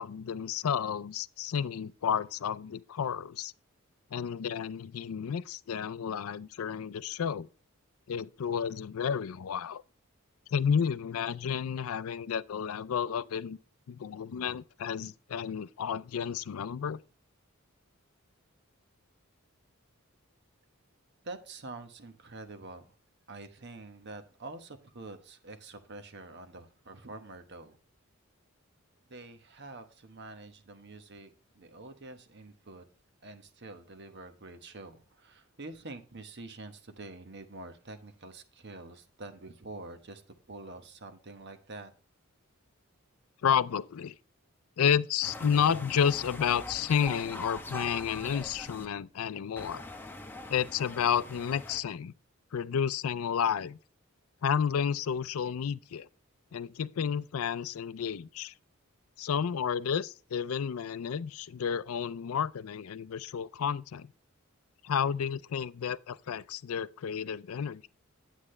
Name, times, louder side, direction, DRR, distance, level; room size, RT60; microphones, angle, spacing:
voice 1, 0.0-3.5 4.1-7.5 8.1-9.8 10.5-13.6 13.9-17.0 43.4-44.2 44.8-49.8 50.5-52.1 52.5-53.8 54.4-56.1 56.5-58.5 59.2-64.1 64.8-67.9, left 7 dB, 90° left, 0.4 m, -31 dB
voice 2, 21.2-22.9 23.3-27.8 29.1-32.8 33.2-40.2 40.5-41.9, right 2 dB, 55° right, 1.1 m, -46 dB
sound 1, 45.2-48.9 49.6-51.8, left 1 dB, 10° left, 0.9 m, -43 dB
9.8 x 8.3 x 3.2 m
head